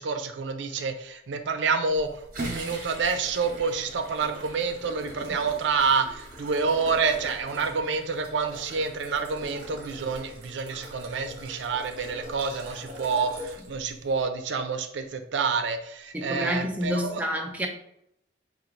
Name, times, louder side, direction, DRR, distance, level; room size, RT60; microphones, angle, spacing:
voice 1, 0.0-17.2, right 5 dB, 80° right, 7 dB, 0.5 m, -28 dB
sound 1, 1.9-14.2, right 1 dB, 45° right, 1.1 m, -42 dB
voice 2, 16.1-17.7, equal, 10° right, 1 dB, 0.5 m, -28 dB
4.5 x 2.5 x 3.9 m, 0.76 s
head